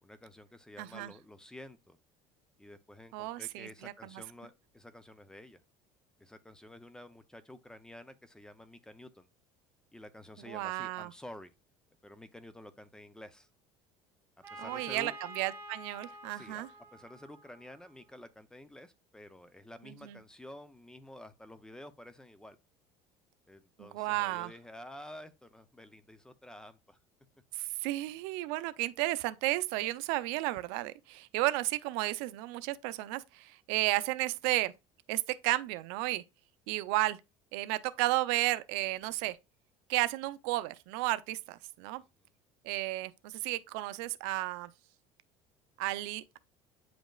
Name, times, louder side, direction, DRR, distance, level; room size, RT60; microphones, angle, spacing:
voice 1, 0.0-2.0 2.6-5.6 6.2-9.3 9.9-11.5 12.0-13.5 14.5-15.2 16.3-22.6 23.5-27.0, left 1 dB, 5° left, 0.5 m, -50 dB
voice 2, 0.8-1.1 3.1-4.2 10.5-11.1 14.6-16.7 20.0-20.2 23.8-24.5 27.5-34.7 35.1-36.2 36.7-37.2 37.5-39.4 39.9-42.0 42.6-44.7 45.8-46.4, right 18 dB, 80° right, 0.5 m, -33 dB
Trumpet, 14.4-18.2, equal, 20° right, 2.6 m, -49 dB
8.8 x 5.2 x 2.3 m
cardioid pair, 145°, 12 cm